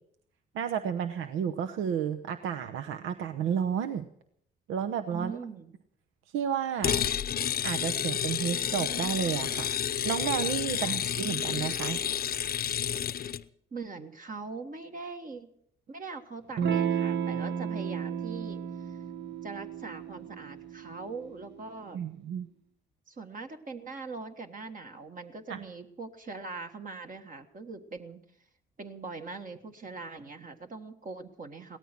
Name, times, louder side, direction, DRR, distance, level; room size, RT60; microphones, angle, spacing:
voice 1, 0.5-4.1 4.7-5.3 6.3-7.0 7.6-9.8 10.0-12.0 21.9-22.5 25.5-25.6, right 8 dB, 85° right, 8 dB, 0.9 m, -31 dB
voice 2, 5.1-5.7 10.8-11.0 13.7-15.5 15.9-19.0 19.4-22.0 23.1-28.2 28.8-31.8, right 4 dB, 45° right, 5 dB, 1.6 m, -42 dB
sound 1, 6.8-13.4, left 9 dB, 50° left, 0.7 m, -30 dB
Electric guitar / Strum, 16.6-21.7, right 7 dB, 65° right, 1.3 m, -33 dB
17.5 x 13.5 x 6.0 m, 0.70 s
cardioid pair, 90°, 20 cm